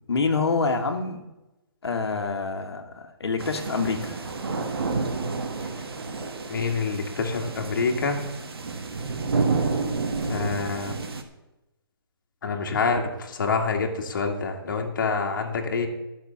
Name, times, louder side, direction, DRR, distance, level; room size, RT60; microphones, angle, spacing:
voice 1, 0.1-1.2 1.8-4.3, left 4 dB, 85° left, 3 dB, 1.7 m, -27 dB
sound 1, 3.4-11.2, right 4 dB, 70° right, 1.6 m, -30 dB
voice 2, 6.5-8.3 10.3-11.0 12.4-15.9, left 4 dB, 50° left, 2 dB, 1.7 m, -26 dB
12.5 x 6.0 x 7.1 m, 1.0 s
hypercardioid pair, 165°, 13 cm